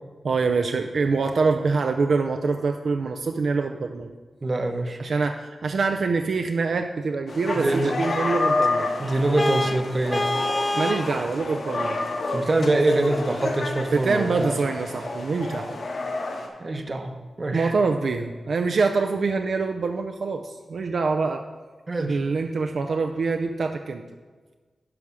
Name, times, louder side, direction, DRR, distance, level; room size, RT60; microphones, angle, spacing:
voice 1, 0.2-4.1 5.0-8.9 10.7-12.0 13.9-15.7 17.5-21.4 22.0-24.0, right 4 dB, 65° right, 5 dB, 0.5 m, -25 dB
voice 2, 4.4-5.0 7.5-8.0 9.0-10.3 12.3-14.6 16.6-17.7 21.9-22.2, right 2 dB, 35° right, 6 dB, 0.8 m, -24 dB
sound 1, 7.3-16.5, left 2 dB, 65° left, 1.4 m, -29 dB
Vehicle horn car horn honking, 9.4-11.1, left 2 dB, 20° left, 0.4 m, -26 dB
11.0 x 4.9 x 6.1 m, 1.4 s
wide cardioid pair, 110°, 0 cm